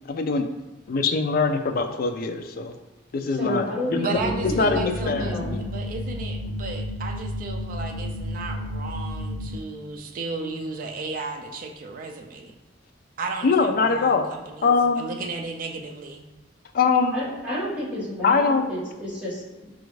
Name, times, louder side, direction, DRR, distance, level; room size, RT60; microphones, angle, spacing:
voice 1, 0.1-0.5 0.9-2.7 3.1-4.0 4.6-5.6 13.4-14.2 14.6-15.1 16.7-17.2 18.2-18.6, left 4 dB, 50° left, 6 dB, 0.3 m, -22 dB
voice 2, 3.3-4.7 5.0-5.6 17.1-19.7, left 1 dB, 5° right, -11 dB, 1.5 m, -31 dB
voice 3, 3.9-12.6 13.2-16.2, right 3 dB, 45° right, 3 dB, 0.3 m, -34 dB
sound 1, 4.1-9.5, left 1 dB, 75° right, 0.8 m, -32 dB
5.0 x 2.4 x 3.1 m, 1.1 s
head